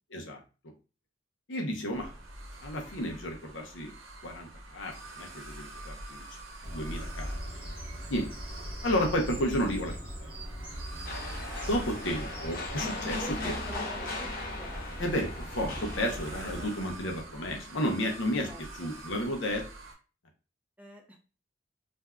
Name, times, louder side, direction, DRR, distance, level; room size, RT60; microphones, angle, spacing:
voice 1, 1.5-2.1 2.6-3.9 4.2-6.2 6.7-7.4 8.1-8.3 8.8-10.3 11.6-13.5 15.0-19.6, equal, 75° left, 2 dB, 0.8 m, -32 dB
sound 1, 1.9-19.9, right 2 dB, 90° right, 0.8 m, -47 dB
Bird vocalization bird call bird song, 6.6-16.7, equal, 25° right, 1.0 m, -40 dB
sound 2, 11.0-16.7, left 2 dB, 50° left, 0.9 m, -38 dB
voice 2, 13.1-14.3 14.6-14.9 18.4-18.6 20.8-21.2, right 1 dB, 10° right, 0 dB, 0.4 m, -46 dB
3.4 x 2.6 x 2.2 m, 0.34 s
head